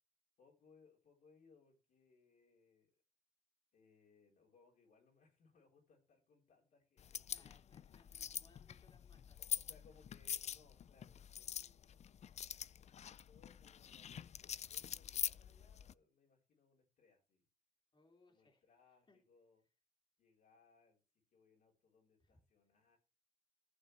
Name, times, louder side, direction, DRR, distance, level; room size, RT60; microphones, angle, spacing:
voice 1, 0.4-2.9 3.7-7.6 9.4-12.1 12.9-17.4 18.3-19.6 20.2-21.0 21.3-23.0, left 4 dB, 85° left, 0 dB, 4.1 m, -70 dB
sound 1, 7.0-15.9, left 9 dB, 55° left, 0.4 m, -45 dB
voice 2, 7.3-9.4 17.9-18.6 19.1-19.2 22.2-22.4, left 3 dB, 40° left, 1 dB, 2.7 m, -70 dB
15.0 x 7.0 x 3.3 m, 0.31 s
cardioid pair, 75°, 13 cm